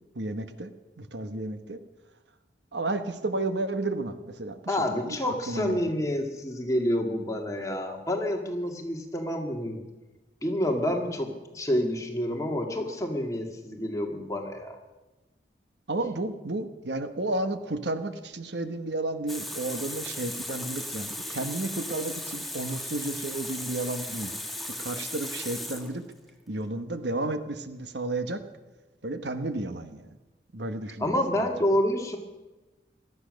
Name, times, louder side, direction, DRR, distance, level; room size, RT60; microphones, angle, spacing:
voice 1, 0.1-1.8 2.7-4.8 5.0-5.9 15.9-24.3 24.8-26.0 26.5-28.4 29.0-30.1 30.5-31.1, right 2 dB, 80° right, 10 dB, 1.2 m, -32 dB
voice 2, 4.7-9.8 10.4-14.8 31.0-32.2, left 1 dB, 20° left, 3 dB, 1.8 m, -28 dB
Water tap faucet, 19.3-26.3, left 1 dB, ahead, 1.3 m, -36 dB
17.5 x 12.5 x 6.4 m, 1.1 s
head